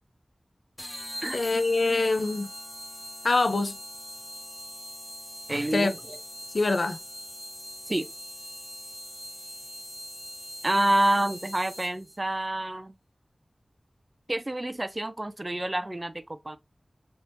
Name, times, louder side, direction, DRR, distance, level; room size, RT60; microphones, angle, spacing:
sound 1, 0.8-12.2, equal, 20° left, 1.1 m, -42 dB
voice 1, 1.3-2.5 3.2-3.7 5.7-5.9 6.5-7.0, left 3 dB, 75° left, 0.4 m, -24 dB
voice 2, 5.5-6.2 7.9-8.1 10.6-12.9 14.3-16.6, right 1 dB, 35° right, 0.4 m, -28 dB
3.4 x 2.9 x 2.6 m
wide cardioid pair, 45°, 0 cm